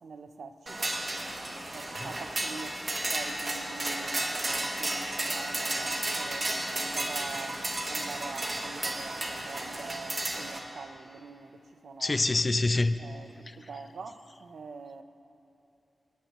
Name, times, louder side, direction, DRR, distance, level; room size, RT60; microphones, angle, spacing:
voice 1, 0.0-1.0 1.7-6.5 6.9-12.2 13.0-15.0, right 4 dB, 70° right, 0.6 m, -44 dB
sound 1, 0.7-10.6, right 1 dB, 30° right, 1.2 m, -33 dB
voice 2, 12.0-12.9, left 2 dB, 25° left, 0.3 m, -25 dB
26.5 x 9.9 x 3.1 m
wide cardioid pair, 180°, 0 cm